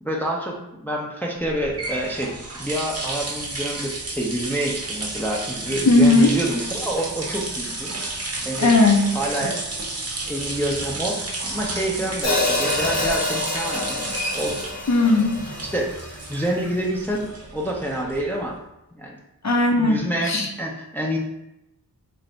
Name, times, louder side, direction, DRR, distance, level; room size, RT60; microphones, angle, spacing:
voice 1, 0.0-8.7 9.1-9.6 10.3-14.6 15.6-16.0 16.3-18.6 18.9-19.2 19.8-21.2, right 1 dB, 5° left, -2 dB, 0.5 m, -27 dB
sound 1, 1.4-18.5, right 2 dB, 40° right, 0.7 m, -32 dB
voice 2, 5.9-6.3 8.6-9.1 14.9-15.3 19.4-20.5, left 2 dB, 50° left, 2 dB, 0.6 m, -17 dB
Hi-hat, 12.2-16.4, left 2 dB, 85° left, 1.1 m, -27 dB
3.2 x 2.5 x 3.9 m, 0.88 s
wide cardioid pair, 65°, 36 cm